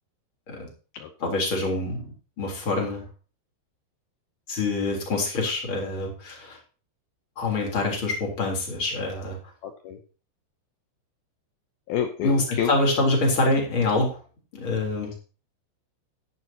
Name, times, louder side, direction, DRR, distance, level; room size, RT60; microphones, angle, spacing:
voice 1, 1.2-3.0 4.5-6.6 7.4-9.4 12.2-14.2 14.5-15.1, left 2 dB, 30° left, 0 dB, 3.9 m, -25 dB
voice 2, 9.6-10.0 11.9-12.7, left 9 dB, 90° left, 6 dB, 2.1 m, -28 dB
13.5 x 10.5 x 2.9 m, 0.36 s
omnidirectional pair, 5.5 m